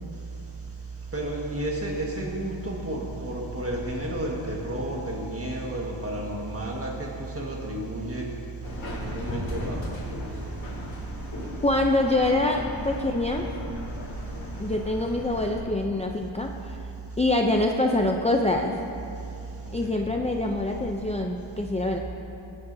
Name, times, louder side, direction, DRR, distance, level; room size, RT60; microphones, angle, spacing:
voice 1, 1.1-8.3 8.9-9.8, right 1 dB, 30° right, -1 dB, 1.7 m, -31 dB
Subway metro underground, 8.6-15.6, left 1 dB, 70° left, 3.2 m, -36 dB
voice 2, 11.6-13.5 14.6-16.9 17.2-18.8 19.7-22.0, left 2 dB, 15° left, 1 dB, 0.5 m, -25 dB
21.0 x 9.5 x 2.7 m, 2.7 s
wide cardioid pair, 110°, 48 cm